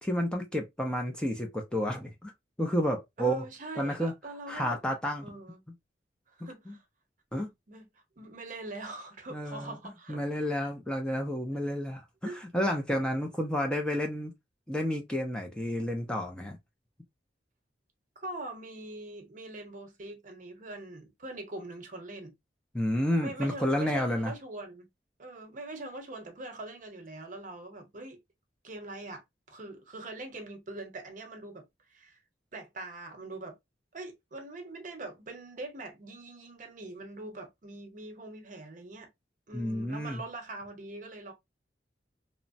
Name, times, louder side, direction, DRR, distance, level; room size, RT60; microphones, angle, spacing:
voice 1, 0.0-2.3 2.6-3.4 3.8-4.1 4.5-5.3 6.7-6.8 7.3-7.5 9.3-9.8 10.1-14.3 14.7-16.6 22.7-24.3 39.5-40.2, equal, 5° left, 0.4 m, -30 dB
voice 2, 3.2-4.8 5.2-5.6 6.4-6.8 7.7-7.9 8.2-10.7 12.2-12.4 18.2-22.3 23.2-24.9 25.2-28.2 28.6-29.2 29.5-31.6 31.9-32.2 32.5-33.6 33.9-39.1 39.5-41.3, right 2 dB, 50° right, 0.7 m, -42 dB
3.1 x 2.1 x 2.5 m
head